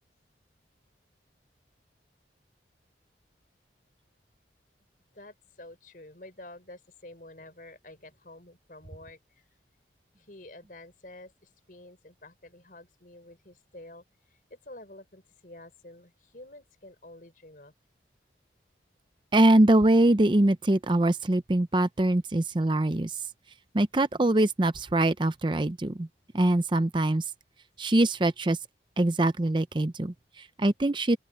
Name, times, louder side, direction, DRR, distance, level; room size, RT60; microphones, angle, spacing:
voice 1, 5.1-9.5 10.2-17.7, left 1 dB, 50° left, 4.5 m, -49 dB
voice 2, 19.3-23.2 23.7-26.1 26.3-27.2 27.8-28.6 29.0-31.2, right 1 dB, 25° right, 0.6 m, -23 dB
open air
head